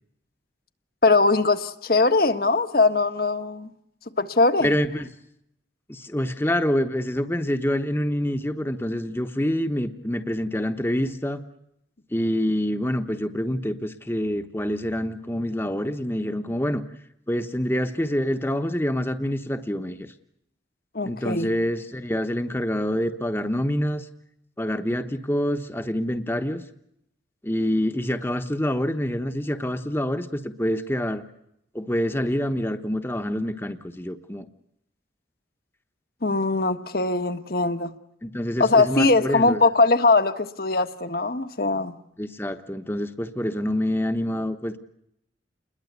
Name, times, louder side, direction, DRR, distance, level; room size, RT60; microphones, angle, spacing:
voice 1, 1.0-3.7 4.2-4.7 20.9-21.5 36.2-37.9 38.6-41.9, left 3 dB, 55° left, 9 dB, 1.5 m, -21 dB
voice 2, 4.6-5.1 5.9-11.4 12.1-16.8 17.3-20.1 21.0-24.1 24.6-26.6 27.4-31.2 31.7-34.5 38.2-39.7 42.2-44.8, equal, 15° left, 9 dB, 1.1 m, -26 dB
29.5 x 21.5 x 8.2 m, 0.78 s
head